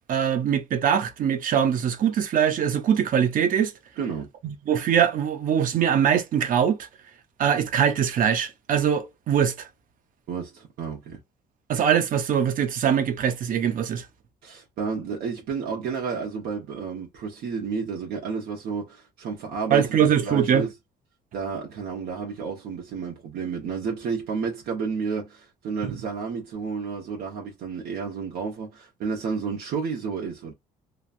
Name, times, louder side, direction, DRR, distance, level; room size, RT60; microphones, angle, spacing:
voice 1, 0.1-3.7 4.4-6.9 7.4-9.7 11.7-14.1 19.7-20.7 25.8-26.0, right 8 dB, 55° right, 0.7 m, -22 dB
voice 2, 4.0-4.3 10.3-11.2 14.4-20.7 21.3-30.5, right 5 dB, 70° right, 1.1 m, -31 dB
3.2 x 2.1 x 2.5 m
cardioid pair, 110°, 17 cm